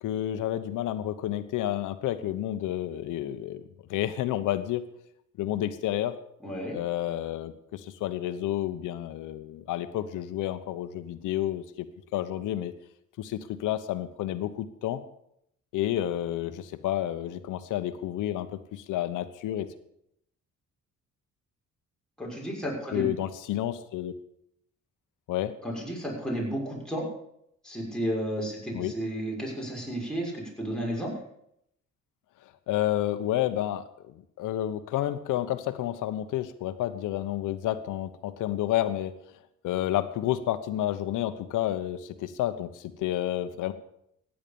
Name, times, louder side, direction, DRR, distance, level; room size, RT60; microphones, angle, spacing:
voice 1, 0.0-3.6 3.9-4.8 5.4-6.2 6.7-11.9 12.1-12.7 13.2-15.0 15.7-19.7 22.9-24.1 25.3-25.5 28.7-28.9 32.7-39.1 39.6-43.7, left 13 dB, 90° left, 11 dB, 1.1 m, -30 dB
voice 2, 6.4-6.8 22.2-23.1 25.6-27.0 27.6-31.1, equal, ahead, -3 dB, 6.5 m, -32 dB
15.0 x 10.0 x 7.0 m, 0.76 s
cardioid pair, 90°, 30 cm